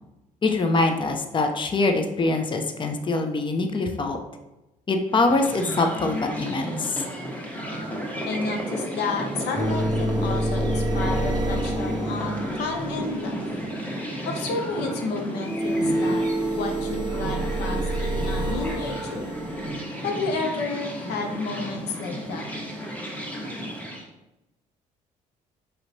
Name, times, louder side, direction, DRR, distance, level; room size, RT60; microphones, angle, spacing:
voice 1, 0.4-4.2 4.9-7.0, left 3 dB, 30° left, 5 dB, 0.6 m, -24 dB
sound 1, 5.1-24.0, equal, 10° left, 1.1 m, -33 dB
voice 2, 8.3-13.4 14.3-16.3 16.6-19.3 20.0-22.5, left 3 dB, 80° left, 3 dB, 0.6 m, -31 dB
sound 2, 9.5-13.1 15.4-19.8, right 1 dB, 25° right, 0.6 m, -27 dB
5.4 x 2.9 x 2.7 m, 0.98 s
supercardioid pair, 65°, 17 cm